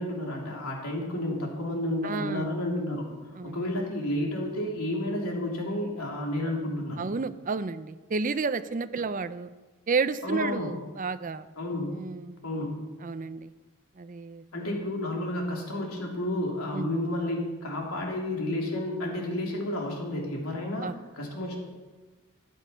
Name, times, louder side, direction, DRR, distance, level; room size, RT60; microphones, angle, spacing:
voice 1, 0.0-7.1 10.2-10.8 11.6-12.0 12.4-12.8 14.5-20.9 21.1-21.6, left 1 dB, 85° left, -1 dB, 3.1 m, -31 dB
voice 2, 2.0-2.5 3.4-3.6 7.0-9.5 9.9-11.5 11.9-12.4 13.0-13.5 14.0-14.4 16.7-16.9 20.8-20.9, right 4 dB, 40° right, 12 dB, 0.5 m, -31 dB
13.5 x 10.0 x 5.6 m, 1.2 s
head